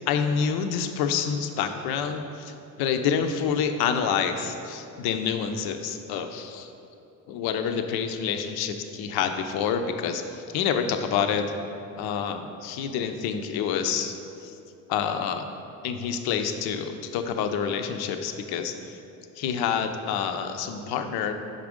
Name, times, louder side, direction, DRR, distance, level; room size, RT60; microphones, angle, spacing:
voice 1, 0.0-6.7 7.3-11.5 12.0-14.1 14.4-14.5 14.9-15.5 15.8-19.0 19.4-21.3, left 7 dB, 65° left, 7 dB, 0.6 m, -27 dB
5.6 x 5.0 x 3.6 m, 2.7 s
hypercardioid pair, 70°, 41 cm